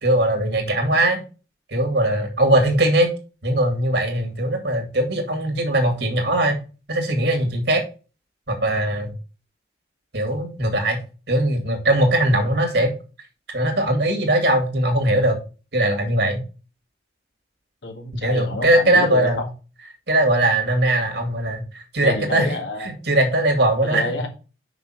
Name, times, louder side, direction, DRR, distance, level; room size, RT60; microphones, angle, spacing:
voice 1, 0.0-1.2 1.7-3.1 3.4-6.6 6.9-7.8 8.5-9.1 10.1-11.0 11.3-12.9 13.5-15.4 15.7-16.4 18.1-19.4 20.1-21.7 21.9-22.5 22.8-24.1, right 1 dB, 65° right, 2.3 m, -20 dB
voice 2, 17.8-19.3 22.0-22.9 23.8-24.3, left 2 dB, 80° left, 1.9 m, -28 dB
6.1 x 5.8 x 5.8 m
head